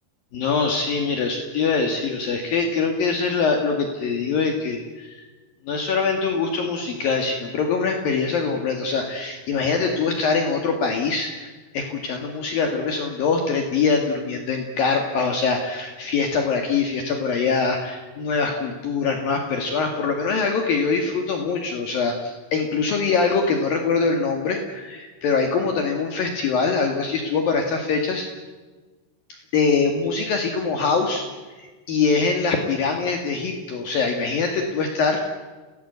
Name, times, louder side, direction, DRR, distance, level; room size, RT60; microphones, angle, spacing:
voice 1, 0.3-5.2 5.7-11.5 11.7-28.3 29.5-31.2 31.6-35.2, left 4 dB, 60° left, 3 dB, 3.5 m, -23 dB
30.0 x 19.5 x 8.2 m, 1.3 s
omnidirectional pair, 4.9 m